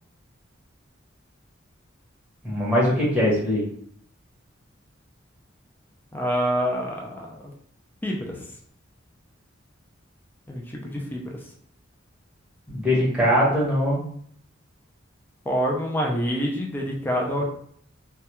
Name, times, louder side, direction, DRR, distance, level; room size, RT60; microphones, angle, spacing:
voice 1, 2.4-3.6 12.7-14.0, equal, 5° right, -6 dB, 0.8 m, -21 dB
voice 2, 6.1-7.4 8.0-8.4 10.5-11.3 15.5-17.4, equal, 10° left, -1 dB, 0.3 m, -26 dB
2.2 x 2.2 x 2.8 m, 0.63 s
head